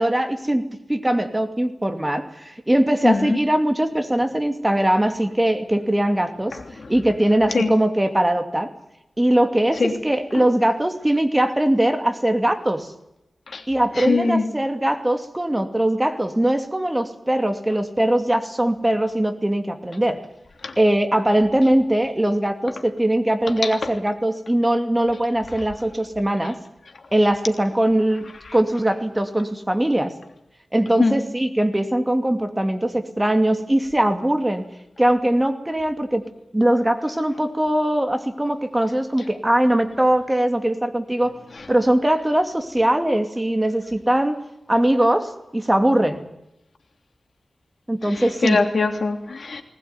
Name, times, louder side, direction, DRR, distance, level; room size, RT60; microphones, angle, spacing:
voice 1, 0.0-6.6 6.9-8.7 9.2-12.9 13.7-20.2 20.8-26.6 27.1-30.1 30.7-34.7 35.0-36.2 36.5-41.3 41.7-44.4 44.7-46.2 47.9-48.6, right 1 dB, 15° right, 7 dB, 2.6 m, -21 dB
voice 2, 3.0-3.4 6.8-6.9 7.5-7.7 9.8-9.9 10.3-10.4 13.5-13.6 13.9-14.5 20.6-20.7 23.6-23.7 31.0-31.2 48.1-49.6, left 3 dB, 65° left, 5 dB, 3.2 m, -22 dB
20.0 x 19.5 x 9.7 m, 0.84 s
wide cardioid pair, 95°, 0 cm